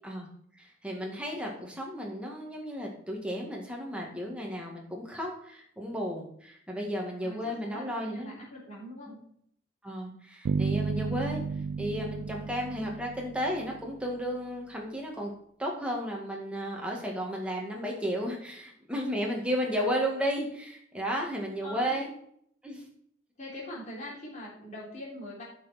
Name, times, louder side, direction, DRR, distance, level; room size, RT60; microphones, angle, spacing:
voice 1, 0.6-8.3 9.8-11.4 11.8-15.3 15.6-22.1 22.6-22.8, equal, 5° right, -1 dB, 1.9 m, -33 dB
voice 2, 7.2-9.2 19.2-19.3 21.6-22.0 23.4-25.4, left 1 dB, 40° left, -5 dB, 3.4 m, -43 dB
sound 1, 10.4-14.2, right 5 dB, 85° right, 0.3 m, -33 dB
9.3 x 6.1 x 4.3 m, 0.66 s
head